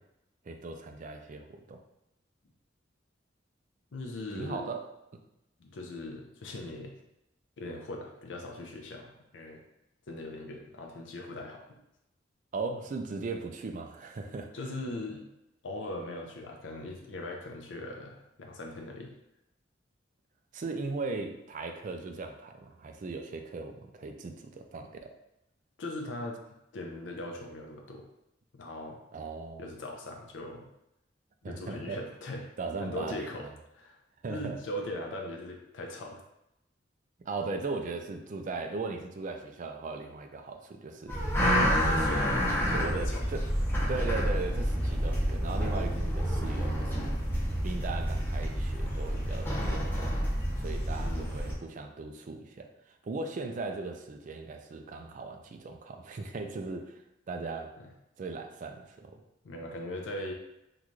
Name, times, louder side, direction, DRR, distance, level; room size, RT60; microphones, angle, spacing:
voice 1, 0.4-1.8 4.3-4.8 12.5-14.7 20.5-25.1 29.1-29.7 31.4-32.0 32.6-33.5 34.2-34.6 37.2-41.5 41.9-43.4 43.9-47.2 47.6-50.3 50.6-57.7 58.2-59.2, right 3 dB, 45° right, 5 dB, 0.4 m, -38 dB
voice 2, 3.9-4.7 5.6-6.9 7.6-9.6 10.1-11.8 14.5-15.3 15.6-19.1 25.8-26.4 26.7-28.1 28.5-29.0 29.6-30.7 31.4-32.5 32.8-33.5 33.7-34.0 34.3-36.2 41.7-43.2 51.0-51.4 57.8-57.9 59.4-60.3, left 1 dB, 80° left, 1 dB, 0.5 m, -40 dB
sound 1, 41.1-51.5, equal, 10° left, 0.7 m, -29 dB
3.8 x 2.3 x 3.1 m, 0.86 s
head